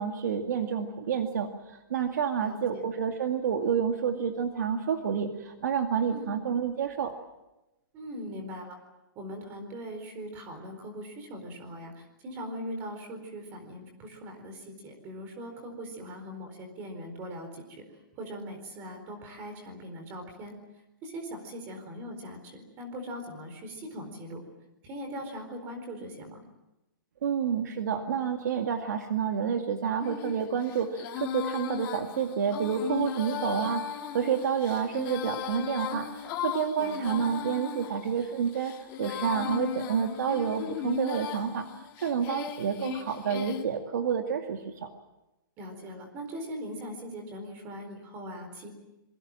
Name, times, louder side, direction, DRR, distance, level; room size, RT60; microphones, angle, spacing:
voice 1, 0.0-7.1 27.2-44.9, right 7 dB, 55° right, 5 dB, 2.2 m, -29 dB
voice 2, 2.4-2.9 6.1-6.3 7.9-8.8 9.2-17.8 18.1-20.5 21.0-24.4 24.8-26.4 36.8-37.2 39.4-39.7 45.6-48.7, equal, 20° right, 5 dB, 4.4 m, -40 dB
Female singing, 30.0-43.6, left 9 dB, 20° left, 2.2 m, -37 dB
26.5 x 23.5 x 7.6 m, 0.98 s
hypercardioid pair, 175°, 12 cm